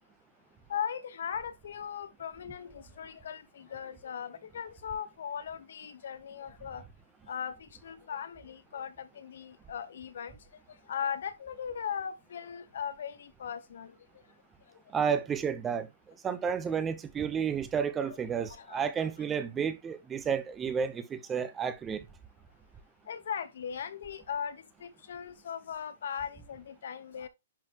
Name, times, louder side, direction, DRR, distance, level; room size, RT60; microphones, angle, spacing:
voice 1, 0.7-6.8 7.3-10.4 10.9-14.0 18.0-18.2 18.5-19.2 23.1-27.3, left 8 dB, 70° left, 1.1 m, -38 dB
voice 2, 14.9-15.9 16.2-22.0, right 7 dB, 15° right, 0.8 m, -31 dB
10.5 x 4.1 x 3.0 m
hypercardioid pair, 160°, 0 cm